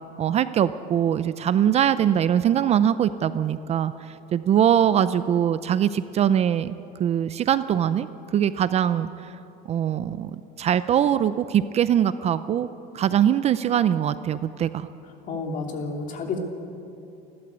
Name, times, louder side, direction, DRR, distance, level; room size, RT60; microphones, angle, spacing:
voice 1, 0.2-6.7 7.0-8.1 8.3-9.4 9.7-10.3 10.6-12.7 12.9-14.9, right 9 dB, 35° right, 13 dB, 0.5 m, -22 dB
voice 2, 15.3-16.4, left 4 dB, 45° left, 2 dB, 3.1 m, -30 dB
29.5 x 12.0 x 8.2 m, 2.8 s
cardioid pair, 140°, 19 cm